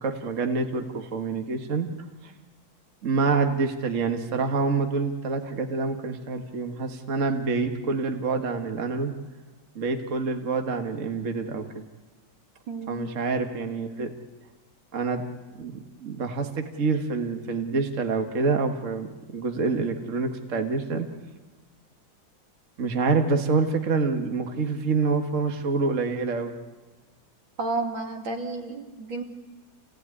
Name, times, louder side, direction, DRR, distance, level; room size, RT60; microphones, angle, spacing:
voice 1, 0.0-1.9 2.2-2.3 3.0-9.1 9.8-11.9 12.9-14.1 14.9-15.2 15.6-21.1 22.8-26.5, right 4 dB, 40° right, 5 dB, 1.8 m, -27 dB
voice 2, 12.7-13.0 27.6-29.2, right 3 dB, 80° right, 2 dB, 3.4 m, -31 dB
28.5 x 17.5 x 9.8 m, 1.3 s
omnidirectional pair, 2.1 m